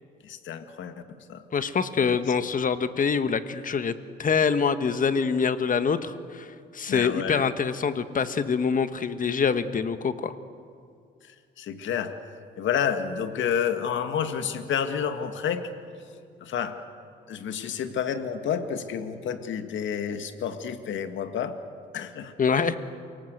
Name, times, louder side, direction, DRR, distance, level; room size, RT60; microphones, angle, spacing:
voice 1, 0.2-1.4 2.0-2.5 6.9-7.5 11.2-12.1 12.6-15.7 16.1-16.2 16.4-16.8 17.3-21.6 21.9-22.3, left 8 dB, 70° left, 8 dB, 1.9 m, -30 dB
voice 2, 1.5-3.9 4.2-6.5 6.7-10.3 22.4-22.8, left 6 dB, 45° left, 11 dB, 1.4 m, -25 dB
29.0 x 18.5 x 8.0 m, 2.3 s
cardioid pair, 90°, 20 cm